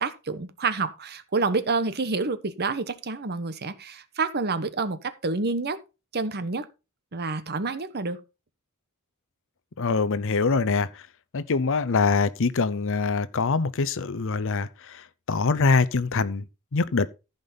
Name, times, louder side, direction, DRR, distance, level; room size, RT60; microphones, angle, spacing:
voice 1, 0.0-5.8 6.1-6.7 7.1-8.2, right 4 dB, 50° right, 1.1 m, -28 dB
voice 2, 9.8-10.9 11.3-16.4 16.7-17.1, left 4 dB, 65° left, 0.7 m, -24 dB
14.5 x 5.2 x 4.1 m
head